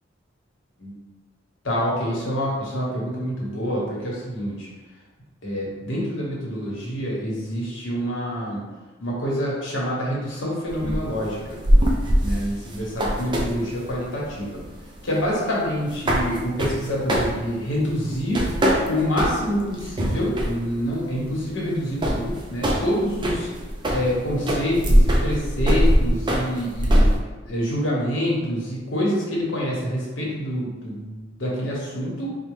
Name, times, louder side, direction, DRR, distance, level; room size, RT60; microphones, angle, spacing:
voice 1, 1.6-4.7 5.4-8.6 9.0-11.6 12.2-14.6 15.0-18.5 18.9-23.5 23.9-27.1 27.4-32.4, equal, 85° left, -4 dB, 1.1 m, -26 dB
sound 1, 10.7-27.2, equal, 25° right, 0.4 m, -23 dB
4.2 x 2.2 x 3.2 m, 1.3 s
head